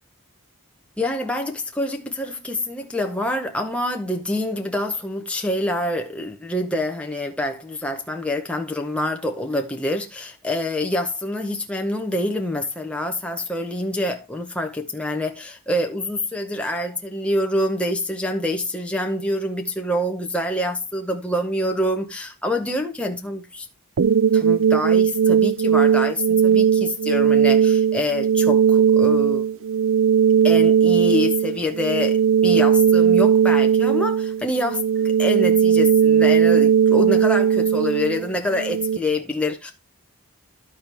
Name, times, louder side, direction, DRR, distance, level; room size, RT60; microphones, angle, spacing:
voice 1, 1.0-23.7 24.3-29.4 30.4-34.8 35.2-39.7, left 1 dB, 5° left, 0.8 m, -26 dB
sound 1, 24.0-39.0, right 7 dB, 60° right, 0.4 m, -18 dB
13.0 x 4.5 x 3.4 m
head